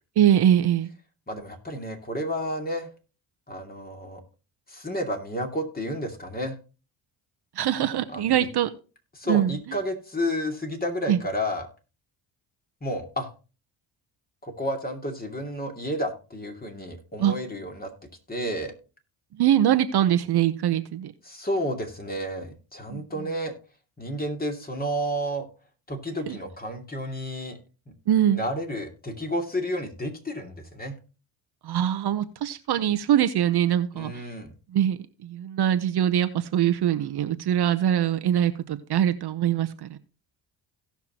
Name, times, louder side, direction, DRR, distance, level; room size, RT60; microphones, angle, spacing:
voice 1, 0.2-0.9 7.6-8.7 9.3-9.6 11.1-11.2 17.2-17.3 19.4-21.1 22.9-23.0 26.3-26.4 28.1-28.4 31.6-34.1 34.7-40.0, right 10 dB, 55° right, 11 dB, 0.9 m, -23 dB
voice 2, 1.3-2.9 3.5-4.2 4.7-6.6 8.1-8.5 9.1-11.7 12.8-13.3 14.4-17.9 18.3-18.7 21.2-23.5 24.0-25.5 25.9-27.6 27.9-28.0 28.3-31.0 33.9-34.5, equal, 20° left, 3 dB, 2.5 m, -31 dB
17.0 x 5.8 x 2.9 m, 0.34 s
supercardioid pair, 75°, 46 cm